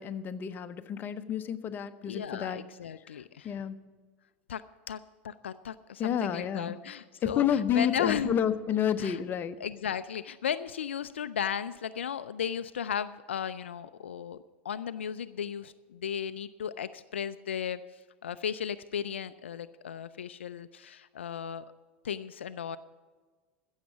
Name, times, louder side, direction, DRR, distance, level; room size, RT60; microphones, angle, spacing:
voice 1, 0.0-2.6 3.0-3.8 6.0-6.8 7.2-9.6, left 9 dB, 30° left, 10 dB, 0.8 m, -30 dB
voice 2, 2.1-3.5 4.5-4.6 4.9-5.0 5.2-8.3 9.0-9.2 9.6-14.4 14.6-17.8 18.2-21.6 22.0-22.8, left 8 dB, 80° left, 13 dB, 0.4 m, -35 dB
15.0 x 7.3 x 7.0 m, 1.4 s
figure-of-eight pair, 85°, 6 cm